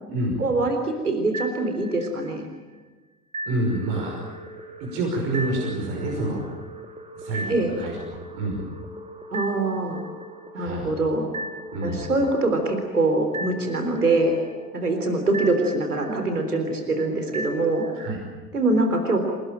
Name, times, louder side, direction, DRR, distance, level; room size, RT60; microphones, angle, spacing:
voice 1, 0.4-2.4 7.5-7.7 9.3-10.0 10.5-11.3 11.8-14.4 14.7-17.9 18.5-19.2, right 2 dB, 80° right, 4 dB, 3.8 m, -23 dB
sound 1, 1.3-2.3 3.3-18.2, right 1 dB, 15° right, 2.5 m, -38 dB
voice 2, 3.5-4.2 4.8-6.4 7.2-8.6 10.5-10.9 11.7-12.1 17.9-18.2, right 2 dB, 50° right, 0 dB, 5.8 m, -28 dB
28.5 x 20.0 x 9.0 m, 1.3 s
figure-of-eight pair, 75°, 45 cm